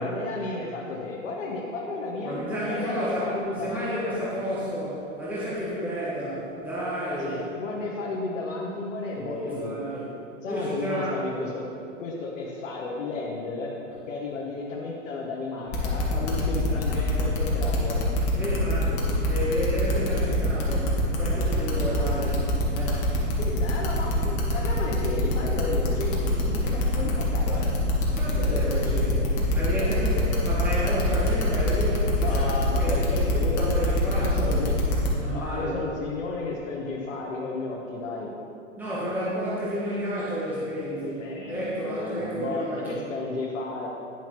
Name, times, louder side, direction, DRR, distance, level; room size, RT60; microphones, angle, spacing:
voice 1, 0.0-4.1 7.3-9.7 10.4-11.7 12.0-13.7 14.1-18.1 21.8-21.9 23.4-27.7 29.8-29.9 32.2-33.7 34.2-34.7 35.3-38.3 41.2-43.9, left 3 dB, 70° left, -3 dB, 1.2 m, -33 dB
voice 2, 2.2-7.4 9.1-10.1 10.5-11.1 18.4-22.4 22.7-23.1 28.1-33.3 33.5-34.5 35.1-35.8 38.8-43.0, equal, 5° right, -10 dB, 1.5 m, -31 dB
sound 1, 15.7-35.1, equal, 35° left, 1.7 m, -25 dB
10.0 x 5.9 x 3.0 m, 2.8 s
hypercardioid pair, 120°, 38 cm